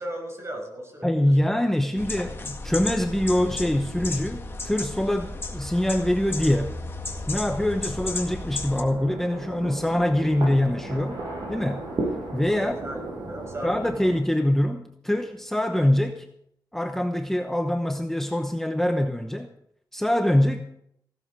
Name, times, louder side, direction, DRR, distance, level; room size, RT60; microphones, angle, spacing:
voice 1, 0.0-1.1 12.5-13.9, right 1 dB, 35° right, 3 dB, 5.7 m, -36 dB
voice 2, 1.0-6.8 7.3-11.9 12.3-12.8 13.6-16.3 16.7-19.5 19.9-20.6, left 1 dB, 5° left, 5 dB, 0.9 m, -24 dB
sound 1, 2.0-8.8, left 2 dB, 30° left, 1.8 m, -33 dB
sound 2, 8.8-14.2, right 2 dB, 60° right, 7.2 m, -34 dB
16.5 x 13.0 x 4.7 m, 0.73 s
wide cardioid pair, 110°, 8 cm